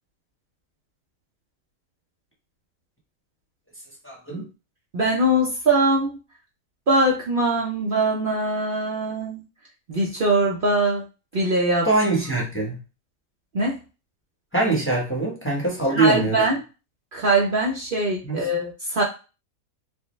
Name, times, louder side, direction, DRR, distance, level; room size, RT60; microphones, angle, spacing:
voice 1, 4.0-4.5 11.8-12.8 14.5-16.4 18.2-18.5, right 2 dB, 10° left, -3 dB, 0.7 m, -23 dB
voice 2, 4.9-6.2 6.9-9.4 9.9-11.0 11.3-11.9 13.5-13.8 15.9-16.6 17.1-19.0, right 2 dB, 90° right, -3 dB, 0.4 m, -22 dB
4.6 x 2.1 x 3.1 m, 0.32 s
omnidirectional pair, 1.8 m